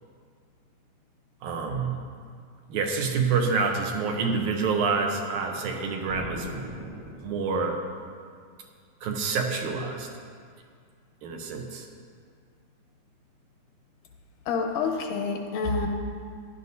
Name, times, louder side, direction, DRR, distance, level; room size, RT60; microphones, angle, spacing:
voice 1, 1.4-2.0 2.7-6.5 7.2-7.8 9.0-10.1 11.2-11.9, right 5 dB, 75° right, 2 dB, 2.3 m, -27 dB
sound 1, 6.1-7.8, right 1 dB, 50° right, 1.5 m, -39 dB
voice 2, 14.5-15.9, left 4 dB, 85° left, 2 dB, 2.5 m, -27 dB
15.0 x 11.0 x 2.7 m, 2.1 s
omnidirectional pair, 3.6 m